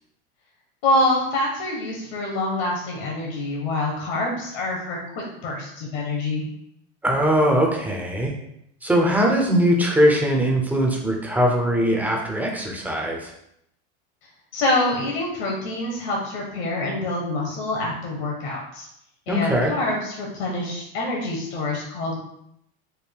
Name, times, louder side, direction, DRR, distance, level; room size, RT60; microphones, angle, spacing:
voice 1, 0.8-6.4 14.5-18.9 19.3-22.2, left 2 dB, 70° left, -2 dB, 1.0 m, -26 dB
voice 2, 7.0-8.3 8.8-13.3 19.3-19.7, equal, 5° right, 0 dB, 0.3 m, -21 dB
4.4 x 2.2 x 3.4 m, 0.77 s
supercardioid pair, 140°, 31 cm